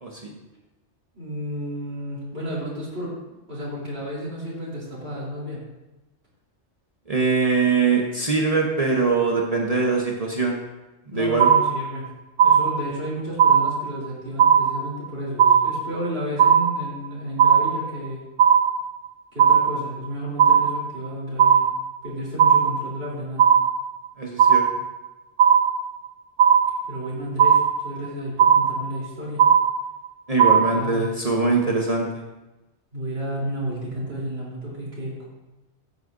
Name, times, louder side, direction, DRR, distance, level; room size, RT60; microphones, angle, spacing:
voice 1, 1.1-3.1 3.5-5.6 11.1-12.1 12.4-18.3 19.3-21.7 22.0-23.5 26.9-29.5 30.7-31.1 32.9-35.2, equal, 55° right, -7 dB, 3.6 m, -32 dB
voice 2, 7.1-10.6 11.1-11.5 24.2-24.8 30.3-32.2, right 4 dB, 35° right, -1 dB, 1.0 m, -22 dB
sound 1, 11.4-12.1 12.4-13.1 13.4-14.1 14.4-15.1 15.4-16.1 16.4-17.1 17.4-18.1 18.4-19.1 19.4-20.1 20.4-21.1 21.4-22.1 22.4-23.1 23.4-24.1 24.4-25.1 25.4-26.1 26.4-27.1 27.4-28.1 28.4-29.1 29.4-30.1 30.4-31.1, right 7 dB, 75° right, 1.0 m, -17 dB
13.0 x 8.2 x 2.6 m, 1.0 s
omnidirectional pair, 1.2 m